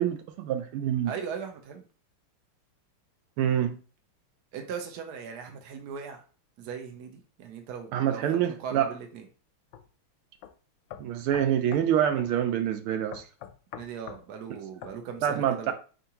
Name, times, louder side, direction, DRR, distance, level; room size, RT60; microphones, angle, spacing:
voice 1, 0.0-1.1 3.4-3.7 7.9-8.9 11.0-13.2 15.2-15.7, right 10 dB, 80° right, 1.5 m, -26 dB
voice 2, 1.0-1.9 4.5-6.2 6.6-9.3 13.8-15.7, right 6 dB, 65° right, 1.1 m, -39 dB
sound 1, 9.7-9.9 10.4-10.5 10.9-11.9 12.2-12.4 13.1-14.2 14.8-15.0, left 10 dB, 75° left, 1.2 m, -43 dB
4.4 x 3.7 x 2.8 m
omnidirectional pair, 2.4 m